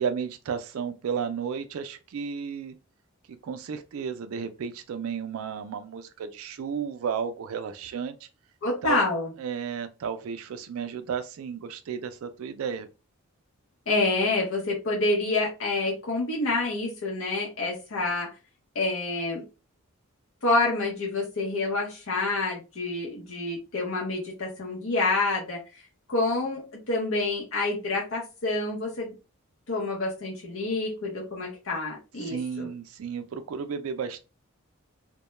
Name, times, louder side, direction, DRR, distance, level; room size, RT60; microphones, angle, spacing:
voice 1, 0.0-2.8 3.3-8.3 8.8-9.0 9.4-12.9 32.2-34.2, right 6 dB, 75° right, 0.3 m, -33 dB
voice 2, 8.6-9.3 13.9-18.3 18.7-19.4 20.4-25.6 26.1-29.1 29.7-32.7, left 2 dB, 70° left, 0.7 m, -28 dB
2.2 x 2.1 x 2.9 m
head